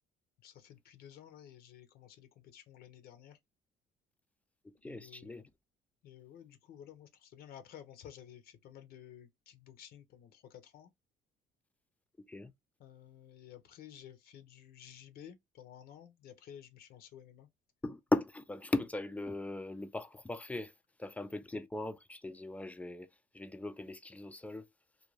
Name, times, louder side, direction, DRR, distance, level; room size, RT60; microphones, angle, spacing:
voice 1, 0.4-3.4 4.8-5.5 6.0-10.9 12.8-17.5, left 10 dB, 65° left, 0.6 m, -53 dB
voice 2, 4.6-5.4 12.3-12.5 17.8-20.7 21.0-23.1 23.3-24.7, left 2 dB, 10° left, 0.3 m, -38 dB
2.4 x 2.2 x 3.0 m
cardioid pair, 110°, 17 cm